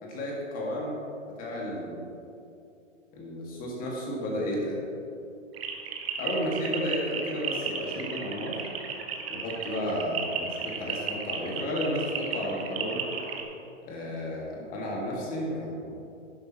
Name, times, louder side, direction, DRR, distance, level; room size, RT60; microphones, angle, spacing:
voice 1, 0.0-1.0 1.4-2.1 3.1-4.8 6.2-8.6 9.3-13.1 13.9-16.0, equal, 20° left, -3 dB, 2.2 m, -32 dB
sound 1, 5.5-13.4, right 6 dB, 50° right, 1.3 m, -34 dB
11.5 x 11.0 x 3.1 m, 2.7 s
hypercardioid pair, 140°, 38 cm